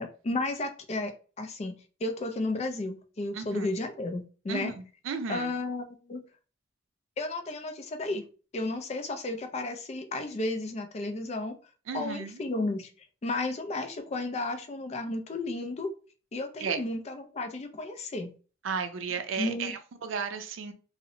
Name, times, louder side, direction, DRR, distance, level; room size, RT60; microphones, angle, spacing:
voice 1, 0.0-4.7 5.3-6.2 7.2-8.2 8.5-11.6 11.9-12.9 13.2-15.9 16.3-18.3 19.4-19.7, left 2 dB, 35° left, 0.3 m, -33 dB
voice 2, 3.3-3.7 4.5-5.5 11.9-12.4 16.6-16.8 18.6-20.7, right 5 dB, 80° right, 0.4 m, -34 dB
2.5 x 2.0 x 2.7 m
head